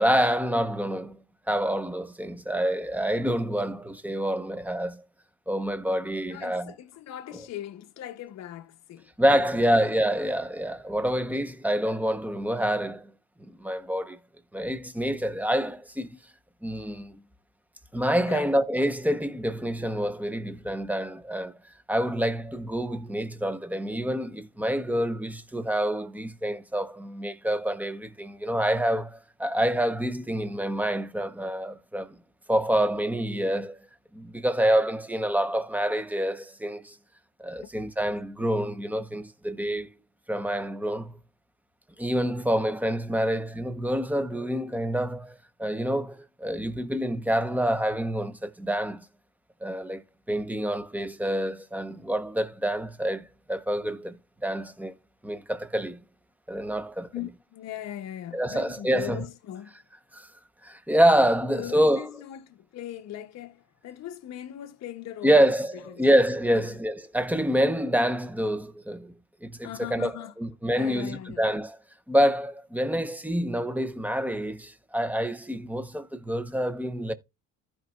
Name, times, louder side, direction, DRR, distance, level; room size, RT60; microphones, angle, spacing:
voice 1, 0.0-5.0 5.5-6.7 9.2-13.1 13.6-14.2 14.5-16.1 16.6-17.2 17.9-21.6 21.9-32.2 32.5-33.8 34.1-37.0 37.4-39.9 40.3-41.2 42.0-49.1 49.6-50.0 50.3-54.9 55.2-56.0 56.5-57.1 58.3-59.2 60.1-60.3 60.6-62.1 65.2-69.1 69.4-71.8 72.1-77.1, equal, 5° right, 0.7 m, -27 dB
voice 2, 6.3-9.5 18.3-18.5 57.1-59.7 61.4-65.5 65.7-66.1 66.5-66.8 69.6-70.3 70.7-71.4, left 11 dB, 50° left, 0.7 m, -39 dB
15.0 x 5.1 x 2.3 m
cardioid pair, 130°, 34 cm